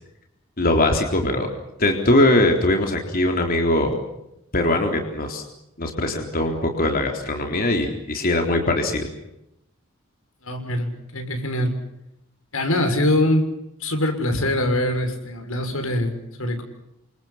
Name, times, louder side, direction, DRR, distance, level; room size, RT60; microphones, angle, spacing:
voice 1, 0.6-1.5 1.8-4.0 4.5-5.4 5.8-9.1, left 1 dB, 45° left, 3 dB, 3.9 m, -21 dB
voice 2, 10.4-11.7 12.5-13.4 13.8-16.6, left 1 dB, 85° left, 6 dB, 6.5 m, -23 dB
29.0 x 27.5 x 5.9 m, 0.84 s
head